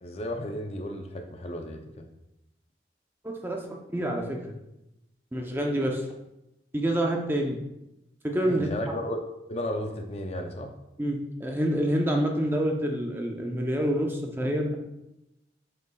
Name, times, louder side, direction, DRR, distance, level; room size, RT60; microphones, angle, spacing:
voice 1, 0.0-2.1 8.4-10.7, left 1 dB, 35° left, 3 dB, 0.5 m, -34 dB
voice 2, 3.2-4.5 5.3-6.1 6.7-7.6 8.2-8.7 11.0-14.8, right 1 dB, 10° right, 1 dB, 0.7 m, -27 dB
7.9 x 5.5 x 2.3 m, 0.91 s
head